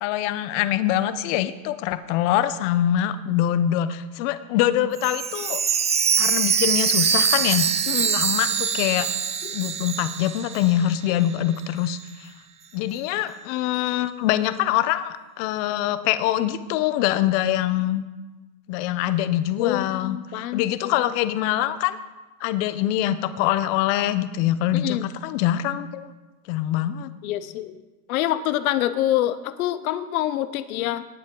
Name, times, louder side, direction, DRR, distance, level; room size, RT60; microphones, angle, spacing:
voice 1, 0.0-5.6 6.2-7.7 8.1-9.1 9.5-12.3 12.7-18.0 18.7-22.0 22.4-26.1 26.5-27.1, left 12 dB, 60° left, 13 dB, 0.8 m, -24 dB
Chime, 5.0-10.9 11.2-11.3 11.9-12.0, right 7 dB, 15° right, 0.5 m, -23 dB
voice 2, 7.9-8.2 9.4-9.5 19.6-20.6 24.7-25.0 27.2-27.7 28.1-31.1, left 13 dB, 90° left, 13 dB, 0.7 m, -26 dB
18.5 x 7.3 x 3.8 m, 1.2 s
supercardioid pair, 135°, 41 cm